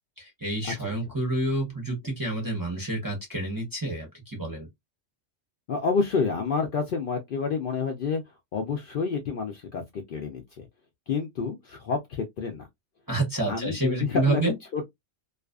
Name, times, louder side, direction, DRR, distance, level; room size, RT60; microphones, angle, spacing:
voice 1, 0.2-4.7 13.1-14.5, right 2 dB, 20° right, 0.6 m, -28 dB
voice 2, 5.7-8.2 8.5-10.7 11.1-12.7 13.5-14.8, left 5 dB, 60° left, 0.6 m, -29 dB
2.4 x 2.4 x 2.3 m
omnidirectional pair, 1.2 m